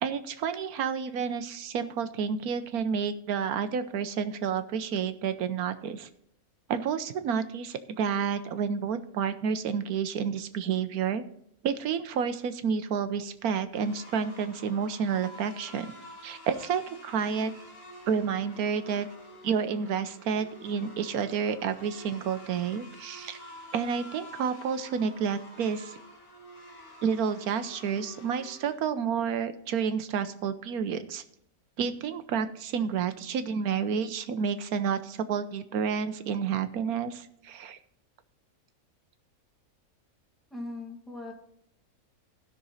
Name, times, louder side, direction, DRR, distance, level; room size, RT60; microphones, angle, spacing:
voice 1, 0.0-6.1 6.7-11.2 11.6-15.9 16.2-17.5 18.1-19.1 19.4-23.4 23.7-26.0 27.0-31.2 31.8-37.8, right 6 dB, 85° right, 11 dB, 1.3 m, -30 dB
sound 1, 13.7-28.7, equal, 80° left, 3.2 m, -49 dB
voice 2, 40.5-41.3, left 2 dB, ahead, -1 dB, 2.2 m, -39 dB
16.0 x 6.1 x 4.1 m, 0.71 s
omnidirectional pair, 1.5 m